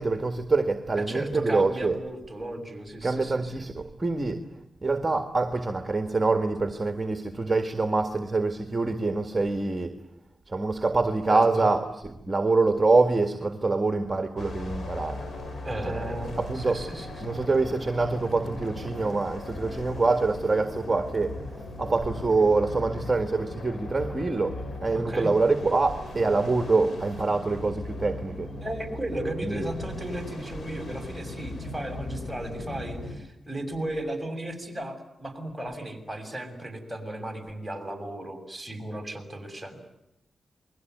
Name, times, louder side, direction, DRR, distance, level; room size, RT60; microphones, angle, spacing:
voice 1, 0.0-2.0 3.0-4.4 4.8-9.9 10.5-11.9 12.2-15.2 15.9-16.1 16.4-16.8 17.2-21.5 21.8-28.5 29.4-29.7, right 3 dB, 25° right, 7 dB, 1.9 m, -25 dB
voice 2, 1.1-3.7 11.3-11.7 15.6-17.3 24.9-25.3 28.6-39.8, right 1 dB, 10° right, 5 dB, 6.8 m, -35 dB
sound 1, 14.4-33.2, left 2 dB, 60° left, 6.4 m, -38 dB
28.5 x 22.0 x 9.5 m, 0.87 s
cardioid pair, 85°, 0 cm